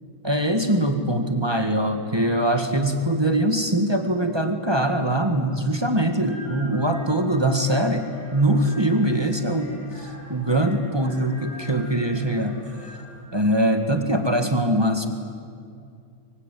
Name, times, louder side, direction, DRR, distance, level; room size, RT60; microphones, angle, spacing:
voice 1, 0.2-12.6 13.3-15.1, right 1 dB, 10° right, 5 dB, 1.3 m, -22 dB
sound 1, 6.2-13.2, left 1 dB, 75° left, 8.2 m, -45 dB
25.0 x 24.0 x 9.4 m, 2.3 s
omnidirectional pair, 3.3 m